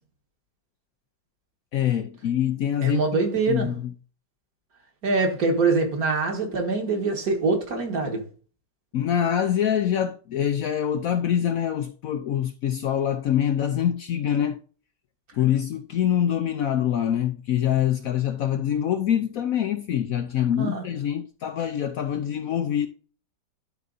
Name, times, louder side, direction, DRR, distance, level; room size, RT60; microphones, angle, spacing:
voice 1, 1.7-3.2 3.5-3.9 8.9-14.6 15.3-22.9, left 10 dB, 70° left, 0.9 m, -25 dB
voice 2, 2.8-3.7 5.0-8.2 20.6-20.8, right 3 dB, 55° right, 2.0 m, -24 dB
12.0 x 4.0 x 4.0 m
omnidirectional pair, 1.9 m